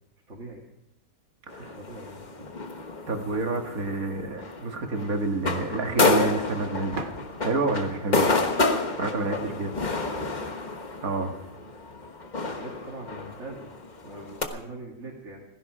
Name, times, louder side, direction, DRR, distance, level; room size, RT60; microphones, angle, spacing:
voice 1, 0.3-0.7 1.6-2.5 9.0-9.7 12.3-13.7 14.0-15.4, right 2 dB, 55° right, -3 dB, 2.7 m, -42 dB
sound 1, 1.5-14.4, left 3 dB, 35° left, 1.3 m, -29 dB
voice 2, 3.1-7.0 7.4-8.3 9.0-9.7 11.0-11.3, right 3 dB, 75° right, 4 dB, 2.2 m, -28 dB
sound 2, 6.9-9.6, right 2 dB, 40° right, 1.3 m, -41 dB
16.0 x 15.5 x 4.9 m, 0.85 s
omnidirectional pair, 1.5 m